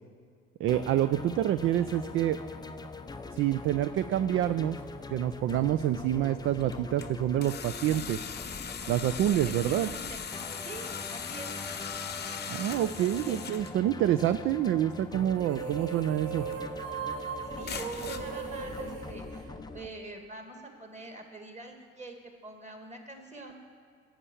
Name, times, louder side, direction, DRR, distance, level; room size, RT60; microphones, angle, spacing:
voice 1, 0.6-2.4 3.3-4.8 5.1-8.2 8.9-9.9 12.5-16.5, right 12 dB, 35° right, 13 dB, 0.4 m, -27 dB
sound 1, 0.7-19.9, left 3 dB, 10° left, 0.5 m, -43 dB
sound 2, 4.7-4.8 5.5-5.6 6.6-7.1 7.4-13.7 15.9-16.0 16.5-16.6 17.7-18.2, left 7 dB, 25° left, 0.9 m, -39 dB
voice 2, 9.7-10.2 10.6-11.5 13.0-13.4 17.4-19.3 19.7-23.6, right 2 dB, 20° right, 3 dB, 2.1 m, -45 dB
sound 3, 15.4-20.1, right 6 dB, 85° right, 1.0 m, -38 dB
11.0 x 7.2 x 7.0 m, 2.1 s
hypercardioid pair, 65°, 36 cm